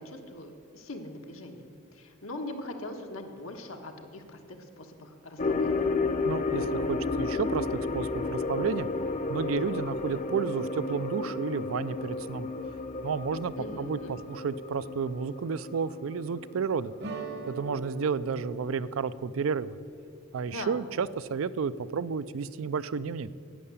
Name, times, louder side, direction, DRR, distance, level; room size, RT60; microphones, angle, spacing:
voice 1, 0.0-1.7 1.9-5.9 13.6-14.2 20.5-20.8, left 1 dB, 85° left, 4 dB, 1.4 m, -41 dB
sound 1, 5.4-18.0 18.2-18.3 18.9-19.0, left 3 dB, 40° left, 0.7 m, -32 dB
voice 2, 6.2-8.9 9.3-12.5 13.0-16.9 17.5-19.8 20.3-23.3, right 5 dB, 80° right, 16 dB, 0.4 m, -31 dB
sound 2, 17.0-21.9, right 3 dB, 55° right, 1.0 m, -44 dB
11.0 x 8.7 x 8.2 m, 2.4 s
head